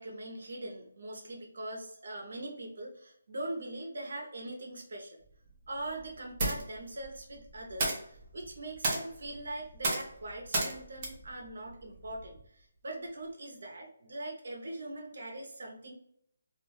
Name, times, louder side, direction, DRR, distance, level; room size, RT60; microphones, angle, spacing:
voice 1, 0.0-5.2 5.7-15.9, right 1 dB, 65° right, 0 dB, 0.7 m, -42 dB
sound 1, 5.2-12.5, right 2 dB, 25° right, 0.6 m, -36 dB
2.4 x 2.2 x 3.0 m, 0.68 s
hypercardioid pair, 175°, 0 cm